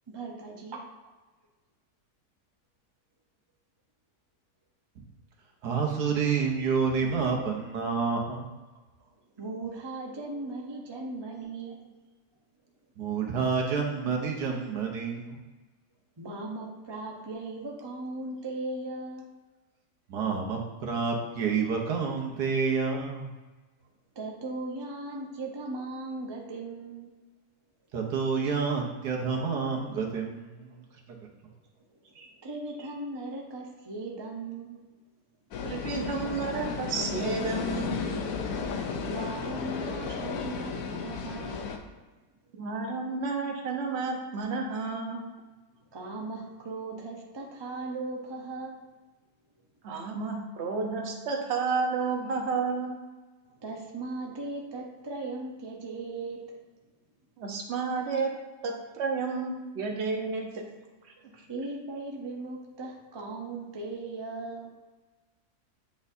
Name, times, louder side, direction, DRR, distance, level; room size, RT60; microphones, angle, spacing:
voice 1, 0.1-0.8 9.0-9.1 9.4-11.8 16.2-19.3 21.6-21.8 24.1-27.1 31.9-32.1 32.4-34.8 39.0-41.7 44.7-44.8 45.9-48.8 53.5-56.5 61.5-64.7, right 2 dB, 30° right, 0 dB, 0.5 m, -38 dB
voice 2, 5.6-8.5 13.0-15.4 20.1-23.3 27.9-30.8, right 5 dB, 75° right, 0 dB, 1.5 m, -29 dB
sound 1, 35.5-41.8, left 5 dB, 70° left, 1.1 m, -34 dB
voice 3, 35.6-38.0 42.6-45.2 49.8-53.0 57.4-58.3 58.6-60.5, right 4 dB, 50° right, 1 dB, 1.0 m, -31 dB
8.3 x 4.2 x 2.7 m, 1.2 s
omnidirectional pair, 1.8 m